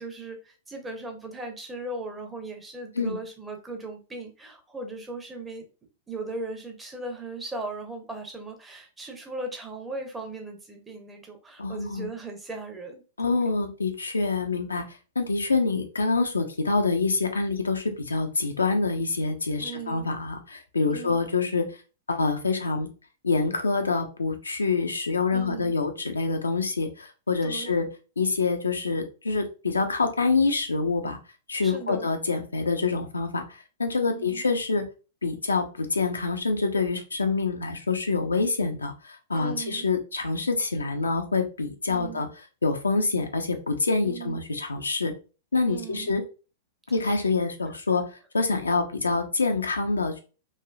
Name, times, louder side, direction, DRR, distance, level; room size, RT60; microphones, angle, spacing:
voice 1, 0.0-5.7 6.1-13.4 19.6-20.1 20.9-21.3 25.3-25.7 27.4-27.8 31.6-32.1 34.1-34.4 39.3-39.9 41.9-42.3 44.0-44.4 45.7-46.1, right 3 dB, 15° right, 3 dB, 0.8 m, -38 dB
voice 2, 11.6-12.1 13.2-14.8 15.2-21.6 22.1-22.9 23.2-27.9 28.2-31.2 31.5-34.8 35.2-42.3 42.6-45.1 45.5-46.2 46.9-48.0 48.3-50.2, left 4 dB, 80° left, 5 dB, 0.5 m, -26 dB
3.2 x 2.6 x 2.3 m, 0.33 s
figure-of-eight pair, 100°, 0 cm